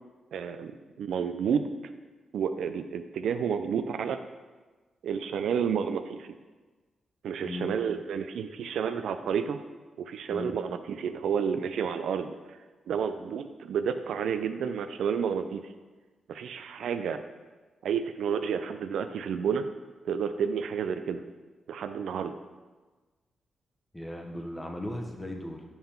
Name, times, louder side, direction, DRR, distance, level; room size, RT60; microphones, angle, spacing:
voice 1, 0.3-1.7 2.3-4.2 5.0-6.3 7.2-9.6 10.0-12.6 12.9-15.6 16.3-17.2 17.8-19.7 20.0-21.2 21.7-22.4, right 7 dB, 80° right, 9 dB, 0.3 m, -30 dB
voice 2, 7.4-7.8 10.3-10.6 23.9-25.6, left 1 dB, 15° left, 2 dB, 1.0 m, -37 dB
5.6 x 5.5 x 4.4 m, 1.3 s
cardioid pair, 80°, 0 cm